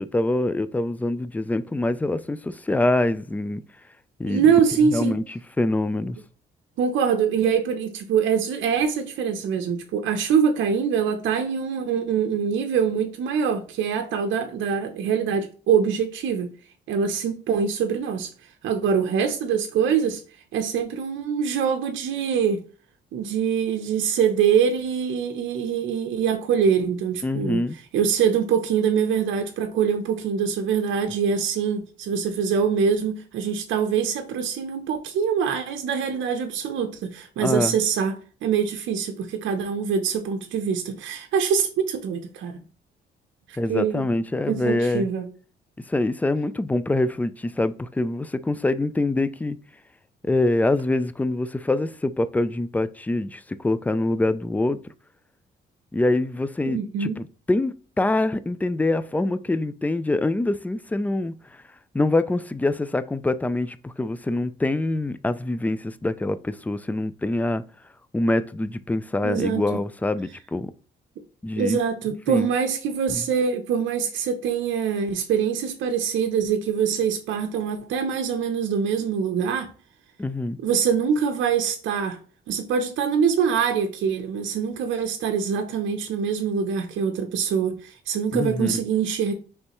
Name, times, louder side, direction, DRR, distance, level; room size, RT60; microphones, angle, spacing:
voice 1, 0.0-3.6 4.2-4.4 4.8-6.2 27.2-27.8 37.4-37.8 43.6-45.1 45.9-49.6 50.2-54.8 55.9-61.3 61.9-67.6 68.1-70.7 71.4-71.8 72.3-72.5 73.1-73.2 80.2-80.6 88.3-88.8, left 2 dB, 10° left, 0.3 m, -25 dB
voice 2, 4.3-5.2 6.8-16.5 16.9-18.3 18.6-20.2 20.5-22.6 23.1-27.6 27.9-38.1 38.4-42.6 43.7-44.0 44.5-45.3 56.6-57.2 69.2-69.6 71.6-79.7 80.6-82.2 82.5-89.3, right 7 dB, 75° right, 0.7 m, -24 dB
5.2 x 3.3 x 3.0 m
cardioid pair, 90°, 20 cm